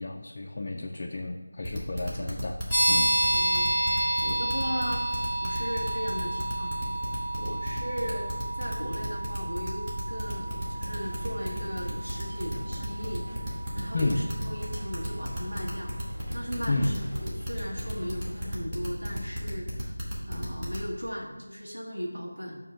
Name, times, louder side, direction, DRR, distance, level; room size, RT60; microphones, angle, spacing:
voice 1, 0.0-2.6 2.9-3.1 13.9-14.2 16.7-17.0, left 2 dB, 30° left, 0 dB, 0.3 m, -31 dB
sound 1, 1.6-20.9, equal, 10° right, 0.8 m, -34 dB
sound 2, 2.7-15.2, right 1 dB, 5° left, 1.8 m, -31 dB
voice 2, 3.2-6.8 7.4-15.9 16.3-20.0 20.3-22.6, equal, 85° right, -3 dB, 1.3 m, -37 dB
sound 3, 10.3-18.5, equal, 35° right, 1.4 m, -47 dB
7.1 x 2.7 x 5.0 m, 1.2 s
figure-of-eight pair, 170°, 0 cm